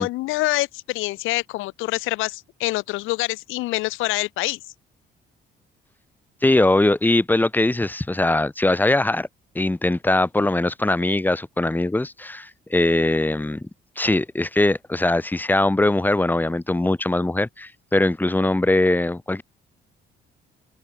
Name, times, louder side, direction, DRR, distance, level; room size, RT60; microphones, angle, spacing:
voice 1, 0.0-4.6, left 19 dB, 90° left, 0.4 m, -26 dB
voice 2, 6.4-9.3 9.5-13.7 14.0-19.4, left 2 dB, 10° left, 0.9 m, -21 dB
open air
cardioid pair, 90°, 20 cm